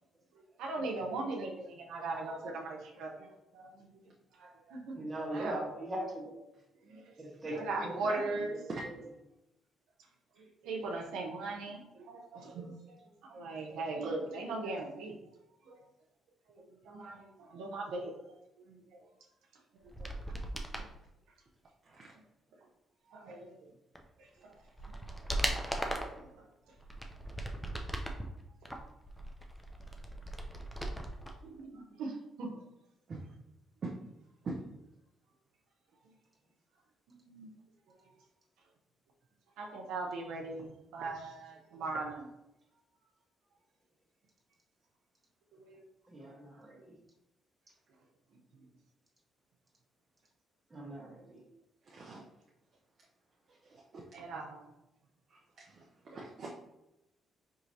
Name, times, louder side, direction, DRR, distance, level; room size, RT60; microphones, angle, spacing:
voice 1, 0.3-4.0 4.3-5.0 5.3-5.6 6.8-8.6 10.4-15.2 15.6-15.9 16.5-18.4 18.7-19.1 20.0-20.2 20.8-20.9 23.1-23.7 24.2-24.6 26.2-26.7 31.4-32.5 37.1-37.5 38.0-38.1 39.6-42.3 45.5-45.8 46.2-46.3 54.1-54.7, right 3 dB, 90° right, -1 dB, 0.7 m, -40 dB
voice 2, 5.0-6.5 7.2-8.2 8.8-8.9 46.1-46.9 50.7-51.4, right 1 dB, 25° right, -2 dB, 1.3 m, -40 dB
voice 3, 8.7-9.1 21.9-22.1 33.1-33.2 33.8-33.9 34.4-34.6 51.9-52.2 53.7-54.0 55.7-56.5, right 3 dB, 50° right, -2 dB, 0.6 m, -42 dB
sound 1, 19.9-20.9 23.9-24.0 24.5-26.2 26.8-28.2 28.6-31.3 31.6-31.7, right 1 dB, 5° left, 0.5 m, -38 dB
4.8 x 2.9 x 2.7 m, 0.91 s
cardioid pair, 90°, 0 cm